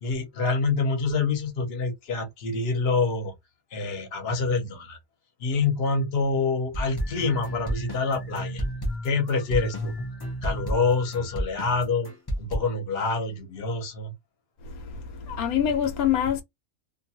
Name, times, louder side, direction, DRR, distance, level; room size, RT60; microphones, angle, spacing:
voice 1, 0.0-3.3 3.7-5.0 5.4-8.6 9.0-9.9 10.4-12.1 12.4-14.1, left 4 dB, 50° left, 1.0 m, -26 dB
sound 1, 6.7-12.6, equal, 35° left, 0.4 m, -31 dB
voice 2, 14.6-16.4, left 9 dB, 80° left, 1.1 m, -26 dB
2.6 x 2.3 x 2.7 m
omnidirectional pair, 1.5 m